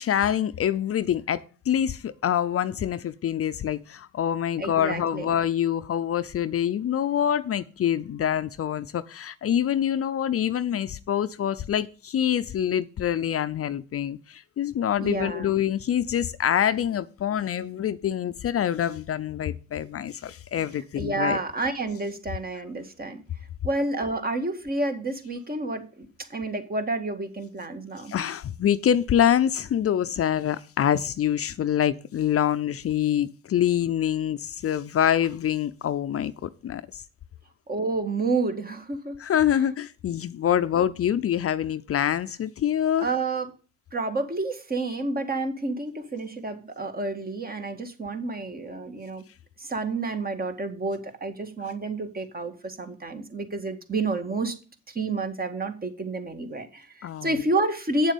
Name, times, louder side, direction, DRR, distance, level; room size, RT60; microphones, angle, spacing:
voice 1, 0.0-21.4 28.1-37.0 39.2-43.1 57.0-57.4, left 10 dB, 50° left, 0.6 m, -25 dB
voice 2, 4.6-5.3 15.0-15.5 21.0-23.2 23.6-28.1 37.7-39.2 43.0-43.5 43.9-49.2 49.6-54.6 54.9-58.1, right 2 dB, 30° right, 1.8 m, -29 dB
8.7 x 7.3 x 5.3 m
cardioid pair, 90°, 30 cm